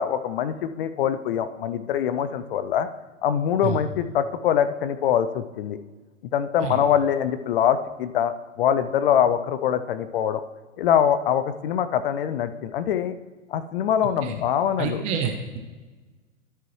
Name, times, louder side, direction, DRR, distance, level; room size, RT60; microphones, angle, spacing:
voice 1, 0.0-2.9 3.2-5.8 6.3-10.4 10.8-13.2 13.5-15.1, left 9 dB, 45° left, 11 dB, 0.5 m, -23 dB
voice 2, 14.8-15.6, right 7 dB, 20° right, 5 dB, 0.4 m, -28 dB
12.5 x 4.5 x 3.1 m, 1.3 s
hypercardioid pair, 120°, 39 cm